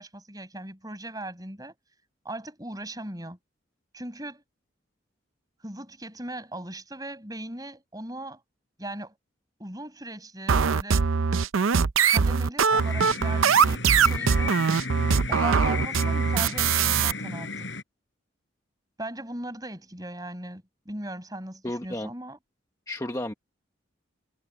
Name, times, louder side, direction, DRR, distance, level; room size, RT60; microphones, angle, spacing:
voice 1, 0.0-1.7 2.2-3.4 3.9-4.4 5.6-8.4 8.8-9.1 9.6-11.1 12.1-14.6 15.3-17.7 19.0-22.4, right 1 dB, 20° right, 5.8 m, -38 dB
sound 1, 10.5-17.1, right 6 dB, 80° right, 0.6 m, -22 dB
sound 2, 12.7-17.8, left 3 dB, 65° left, 5.3 m, -34 dB
voice 2, 21.6-22.1 22.9-23.3, left 1 dB, 15° left, 1.2 m, -32 dB
head